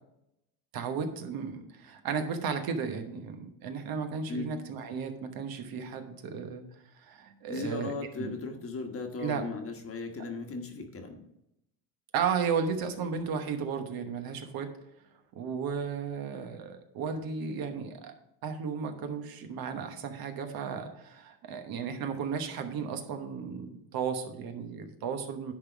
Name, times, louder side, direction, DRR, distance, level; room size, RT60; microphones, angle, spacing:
voice 1, 0.7-6.6 7.0-7.9 8.2-8.4 9.2-9.4 10.2-10.3 12.1-14.7 15.3-18.1 18.4-25.5, right 6 dB, 50° right, 6 dB, 1.1 m, -34 dB
voice 2, 7.5-11.3, left 3 dB, 30° left, 4 dB, 1.3 m, -37 dB
10.5 x 3.9 x 6.0 m, 0.83 s
cardioid pair, 125°, 44 cm